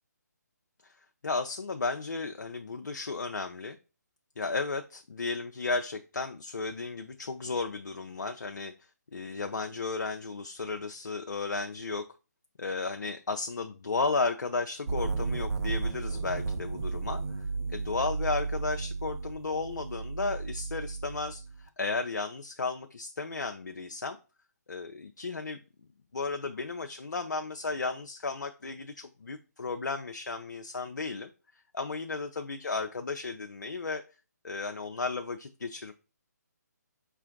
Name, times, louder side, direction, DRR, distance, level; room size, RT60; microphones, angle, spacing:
voice 1, 1.2-3.8 4.4-8.7 9.1-12.0 12.6-24.2 24.7-25.6 26.1-31.3 31.7-34.0 34.4-35.9, left 3 dB, 80° left, 6 dB, 0.4 m, -34 dB
sound 1, 14.9-21.6, right 4 dB, 55° right, 0.5 m, -34 dB
5.1 x 2.4 x 3.7 m, 0.32 s
figure-of-eight pair, 145°, 10 cm